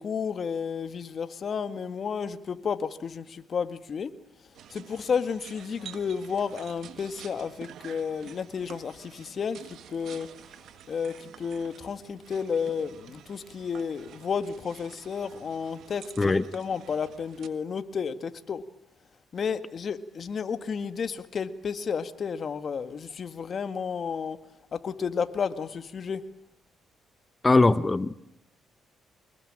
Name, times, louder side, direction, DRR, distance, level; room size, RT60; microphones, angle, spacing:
voice 1, 0.0-4.1 4.7-10.3 10.9-18.7 19.3-24.4 24.7-26.3, left 6 dB, 50° left, 10 dB, 1.8 m, -32 dB
sound 1, 4.5-17.5, right 9 dB, 75° right, 1.7 m, -49 dB
voice 2, 27.4-28.1, left 3 dB, 20° left, 15 dB, 0.9 m, -20 dB
25.5 x 21.0 x 8.9 m, 0.76 s
cardioid pair, 90°, 0 cm